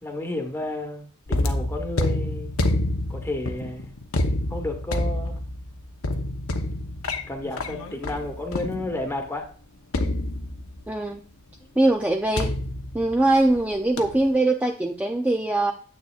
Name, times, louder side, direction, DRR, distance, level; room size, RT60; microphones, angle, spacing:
voice 1, 0.0-2.5 3.1-4.0 4.5-5.4 7.3-9.5, left 2 dB, 10° left, 4 dB, 1.2 m, -31 dB
sound 1, 1.3-9.2 9.9-10.9 12.4-13.6 14.0-14.3, left 1 dB, 80° left, 0.9 m, -28 dB
voice 2, 10.9-11.2 11.8-12.5 12.9-15.7, right 2 dB, 5° right, 2 dB, 0.4 m, -22 dB
9.4 x 8.0 x 2.4 m, 0.42 s
head